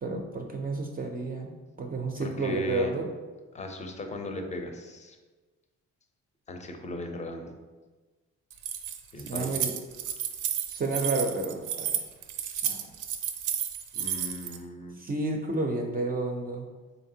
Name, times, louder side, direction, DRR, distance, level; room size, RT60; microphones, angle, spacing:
voice 1, 0.0-1.5 1.8-3.1 9.3-9.7 10.7-12.0 12.6-12.9 15.0-16.7, right 2 dB, 30° right, 2 dB, 0.4 m, -31 dB
voice 2, 2.2-3.0 3.5-5.2 6.5-7.5 9.1-9.6 13.9-15.0, left 1 dB, 25° left, 4 dB, 0.5 m, -37 dB
Keys jangling, 8.5-14.6, right 9 dB, 85° right, 0.5 m, -32 dB
3.9 x 3.5 x 2.7 m, 1.3 s
cardioid pair, 90°, 30 cm